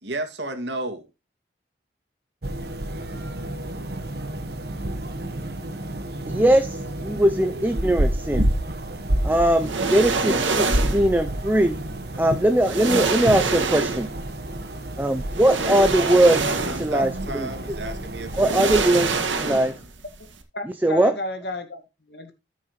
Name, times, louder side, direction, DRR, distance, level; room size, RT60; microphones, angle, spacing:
voice 1, 0.0-1.1 16.0-18.7, right 1 dB, 70° right, 2.1 m, -32 dB
sound 1, 2.4-18.8, right 1 dB, 55° right, 1.3 m, -30 dB
voice 2, 6.3-8.5 9.2-11.8 12.2-14.1 15.0-17.5 18.3-19.7 20.6-21.2, right 1 dB, 10° right, 0.5 m, -21 dB
sound 2, 9.6-11.1 12.2-12.3 12.6-14.2 15.3-17.0 17.4-17.5 18.3-19.9 20.2-20.3, right 4 dB, 90° right, 2.0 m, -25 dB
voice 3, 20.5-22.3, left 1 dB, 60° left, 1.9 m, -33 dB
14.5 x 6.3 x 3.1 m
head